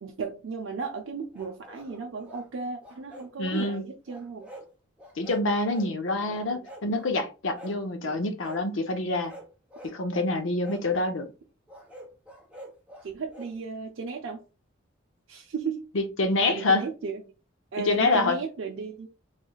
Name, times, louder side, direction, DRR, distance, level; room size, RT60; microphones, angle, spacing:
voice 1, 0.0-4.5 6.2-6.7 8.0-8.3 13.0-14.4 15.3-15.9 16.5-17.2 17.7-19.1, right 5 dB, 70° right, 0.4 m, -35 dB
sound 1, 1.3-2.4 2.8-3.7 4.1-4.7 5.0-5.9 6.3-7.1 7.5-7.8 8.4-8.6 9.1-10.0 10.6-10.8 11.7-13.5, equal, 5° right, 0.8 m, -46 dB
voice 2, 3.4-3.9 5.2-9.3 9.9-11.3 15.9-16.8 17.9-18.4, left 2 dB, 70° left, 0.6 m, -26 dB
3.2 x 3.0 x 2.3 m
head